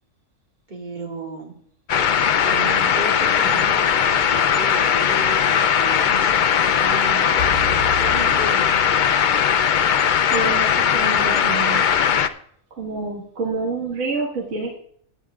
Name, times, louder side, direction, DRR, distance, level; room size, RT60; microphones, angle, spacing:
voice 1, 0.7-1.5 2.0-7.5 8.0-8.8, right 2 dB, 35° right, 0 dB, 2.1 m, -34 dB
sound 1, 1.9-12.3, left 8 dB, 65° left, 0.4 m, -19 dB
sound 2, 7.4-9.5, left 2 dB, 80° left, 1.3 m, -32 dB
voice 2, 10.3-11.9 12.8-14.8, right 3 dB, 65° right, -2 dB, 1.9 m, -27 dB
20.5 x 9.0 x 2.4 m, 0.64 s
omnidirectional pair, 1.4 m